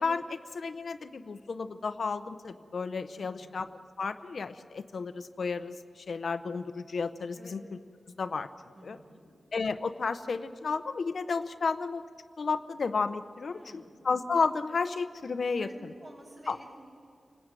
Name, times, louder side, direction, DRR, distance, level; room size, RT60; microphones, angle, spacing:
voice 1, 0.0-7.6 8.2-8.5 8.8-9.0 9.5-12.0 12.4-15.7 16.5-16.6, left 4 dB, 60° left, 10 dB, 0.8 m, -32 dB
voice 2, 3.1-3.6 7.3-7.5 8.7-9.2 13.5-14.0 15.6-16.7, right 1 dB, 40° right, -5 dB, 5.9 m, -51 dB
30.0 x 19.5 x 9.1 m, 2.3 s
wide cardioid pair, 155°, 0 cm